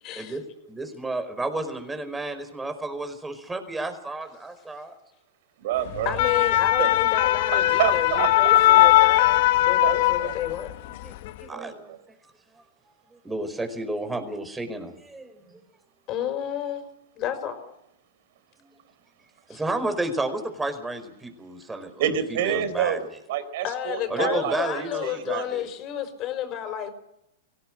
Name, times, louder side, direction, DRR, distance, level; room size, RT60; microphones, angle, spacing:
voice 1, 0.0-0.4 6.0-10.7 16.1-16.8 17.1-17.7 19.5-19.6 23.6-26.9, left 10 dB, 40° left, 8 dB, 5.8 m, -31 dB
voice 2, 0.7-4.9 11.0-11.1 11.4-11.9 13.1-15.6 19.5-23.0 24.1-25.7, right 2 dB, 10° right, 8 dB, 4.9 m, -32 dB
voice 3, 5.6-6.2 6.8-6.9 7.5-8.9 9.8-10.3 11.4-12.0 22.0-25.4, right 10 dB, 65° right, 12 dB, 4.1 m, -28 dB
sound 1, 5.9-10.7 11.1-11.3, left 16 dB, 60° left, 1.1 m, -19 dB
24.0 x 17.5 x 7.8 m, 0.80 s
hypercardioid pair, 125°, 0 cm